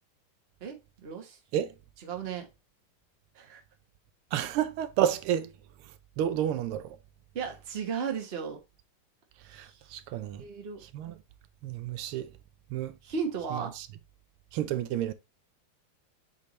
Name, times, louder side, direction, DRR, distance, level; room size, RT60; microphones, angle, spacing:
voice 1, 0.6-1.4 2.0-2.5 3.3-3.6 7.3-8.6 9.5-9.8 10.4-10.8 13.0-13.7, right 6 dB, 35° right, 1.2 m, -35 dB
voice 2, 4.3-5.5 6.2-6.8 9.5-9.7 9.9-10.4 10.9-11.1 11.6-12.3 12.7-12.9 14.5-15.1, right 10 dB, 85° right, 1.5 m, -29 dB
7.5 x 4.2 x 3.1 m
omnidirectional pair, 2.4 m